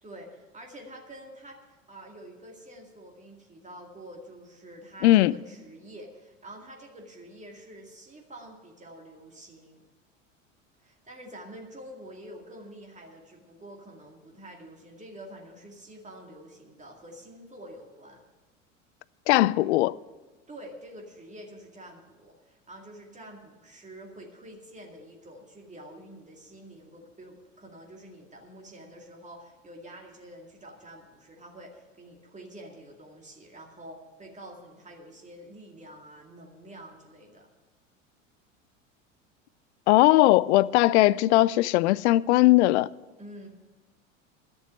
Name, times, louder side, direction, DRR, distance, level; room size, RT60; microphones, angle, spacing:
voice 1, 0.0-9.8 10.8-18.2 20.5-37.5 43.2-43.5, right 1 dB, 20° right, 2.2 m, -47 dB
voice 2, 5.0-5.3 19.3-20.0 39.9-42.9, left 17 dB, 60° left, 0.5 m, -19 dB
11.5 x 7.0 x 9.2 m
hypercardioid pair, 80°, 38 cm